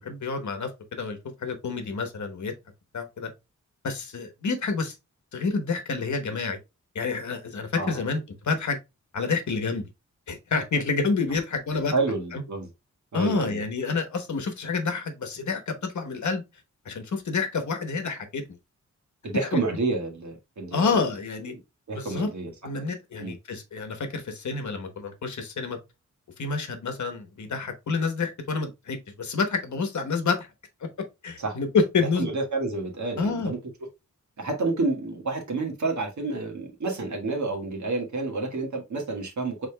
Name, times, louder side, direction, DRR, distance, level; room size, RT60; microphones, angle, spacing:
voice 1, 0.0-2.5 2.9-3.3 3.8-4.9 5.3-6.6 6.9-8.8 9.1-9.8 10.3-11.9 12.3-12.4 13.1-16.4 16.8-18.4 19.4-19.6 20.7-21.5 21.9-22.3 22.6-25.8 26.4-30.5 31.2-32.3 33.2-33.5, left 4 dB, 70° left, 1.1 m, -28 dB
voice 2, 11.9-12.7 13.1-13.6 19.2-21.0 21.9-22.5 23.2-23.4 31.4-31.6 32.0-33.6 34.4-39.7, right 3 dB, 70° right, 1.6 m, -29 dB
5.0 x 4.1 x 2.2 m
wide cardioid pair, 165°, 30 cm